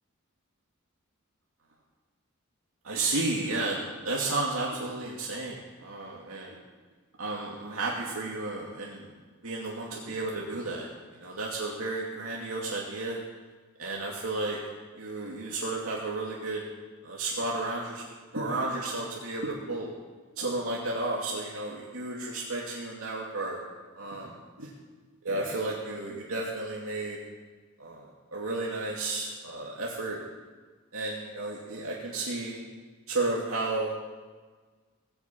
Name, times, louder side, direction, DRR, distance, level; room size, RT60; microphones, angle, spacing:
voice 1, 2.8-3.8 4.0-6.6 7.2-9.1 9.4-10.9 11.2-13.2 13.8-14.6 15.0-16.6 17.0-18.0 18.3-19.9 20.4-23.6 24.0-24.7 25.2-27.2 27.8-28.1 28.3-30.2 30.9-32.6 33.1-33.9, right 2 dB, 90° right, -3 dB, 2.5 m, -32 dB
19.5 x 7.1 x 8.6 m, 1.4 s
head